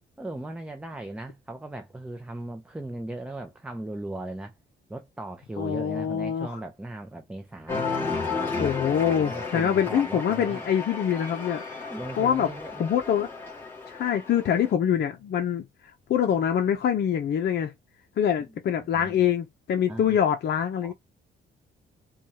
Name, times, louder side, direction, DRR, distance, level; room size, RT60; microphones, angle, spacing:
voice 1, 0.2-4.5 4.9-8.4 9.2-10.7 11.9-12.9 18.8-19.2 19.9-20.2 20.8-20.9, right 1 dB, 5° right, 0.6 m, -38 dB
voice 2, 5.6-6.6 8.6-11.6 12.2-12.5 12.8-13.3 13.9-15.6 16.1-17.7 18.2-20.9, left 9 dB, 55° left, 0.6 m, -25 dB
Cheering, 7.7-14.7, left 4 dB, 10° left, 1.8 m, -33 dB
4.4 x 2.4 x 2.8 m
cardioid pair, 90°, 20 cm